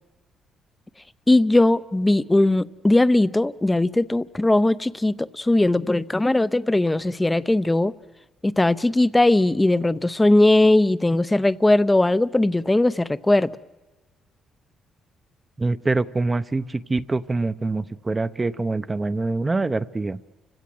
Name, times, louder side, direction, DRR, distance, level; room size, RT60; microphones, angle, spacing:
voice 1, 1.3-7.9 8.4-13.5, left 2 dB, 15° left, 0.7 m, -19 dB
voice 2, 15.6-20.2, right 3 dB, 25° right, 0.7 m, -25 dB
30.0 x 17.0 x 7.8 m
cardioid pair, 90°, 0 cm